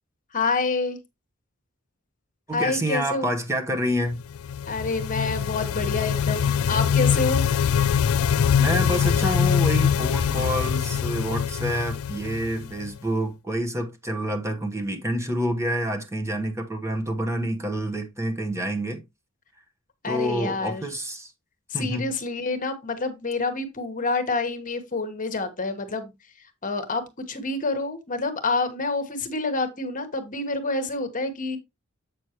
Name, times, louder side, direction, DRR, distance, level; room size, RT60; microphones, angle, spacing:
voice 1, 0.3-1.0 2.5-3.3 4.7-7.4 20.0-20.8 21.7-26.1 26.6-31.6, left 3 dB, 40° left, 1.2 m, -27 dB
voice 2, 2.5-4.2 8.6-19.0 20.0-21.3 21.7-22.1, equal, 15° right, 1.1 m, -28 dB
sound 1, 4.2-13.0, left 7 dB, 75° left, 0.4 m, -23 dB
7.9 x 6.3 x 2.9 m
head